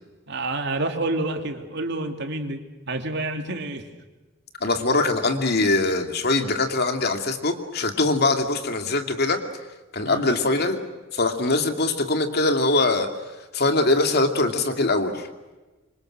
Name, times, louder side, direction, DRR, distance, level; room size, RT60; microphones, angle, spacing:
voice 1, 0.3-3.9 10.0-10.2, right 2 dB, 60° right, 4 dB, 3.1 m, -28 dB
voice 2, 4.6-9.4 9.9-10.8 11.1-13.1 13.5-15.3, left 2 dB, 55° left, 5 dB, 2.6 m, -22 dB
27.0 x 25.5 x 6.4 m, 1.2 s
head